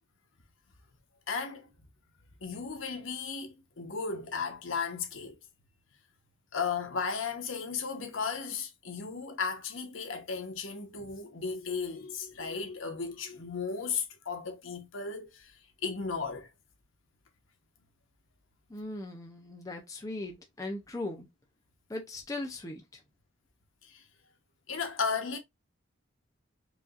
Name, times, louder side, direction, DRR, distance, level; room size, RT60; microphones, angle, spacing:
voice 1, 1.3-1.7 2.4-5.4 6.5-15.5 15.8-16.5 23.8-24.0 24.7-25.4, left 5 dB, 80° left, 1.1 m, -35 dB
voice 2, 18.7-21.3 21.9-23.0, left 2 dB, 15° left, 0.7 m, -39 dB
4.8 x 2.8 x 2.5 m
head